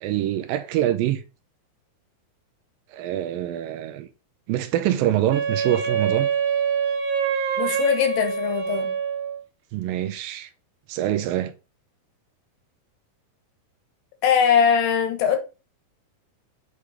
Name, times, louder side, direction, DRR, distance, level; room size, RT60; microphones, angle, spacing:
voice 1, 0.0-1.2 2.9-4.1 4.5-6.3 9.7-10.5 10.9-11.5, right 12 dB, 80° right, 2.2 m, -25 dB
Wind instrument woodwind instrument, 5.3-9.4, right 6 dB, 65° right, 2.1 m, -25 dB
voice 2, 7.6-8.9 14.2-15.4, left 7 dB, 70° left, 2.8 m, -21 dB
8.3 x 3.7 x 4.8 m
omnidirectional pair, 4.2 m